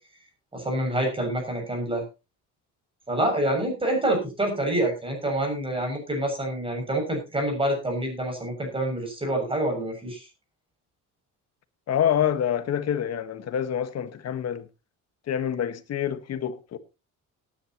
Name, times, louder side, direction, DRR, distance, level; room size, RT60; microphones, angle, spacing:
voice 1, 0.5-2.0 3.1-10.3, right 1 dB, 15° right, 7.0 m, -27 dB
voice 2, 11.9-14.7 15.3-16.8, left 9 dB, 55° left, 1.5 m, -27 dB
18.5 x 10.5 x 3.0 m
cardioid pair, 125°, 31 cm